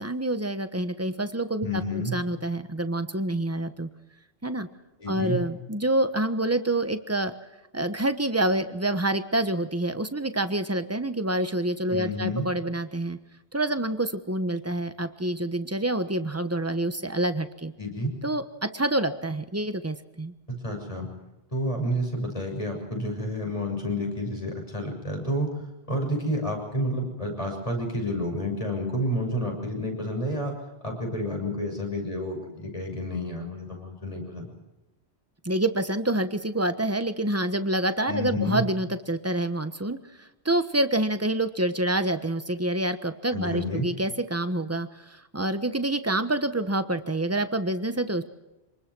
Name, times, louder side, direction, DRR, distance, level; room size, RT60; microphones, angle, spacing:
voice 1, 0.0-3.9 4.4-4.7 5.1-7.3 7.7-13.2 13.5-17.7 18.2-18.4 18.7-20.3 35.4-48.2, right 1 dB, 15° right, 9 dB, 1.2 m, -27 dB
voice 2, 1.6-2.2 5.0-5.4 11.9-12.5 17.8-18.1 20.5-21.1 21.5-25.5 25.9-30.5 30.8-34.5 38.1-38.6 43.3-43.9, equal, 30° left, 2 dB, 6.7 m, -30 dB
26.5 x 20.5 x 6.2 m, 1.0 s
omnidirectional pair, 1.1 m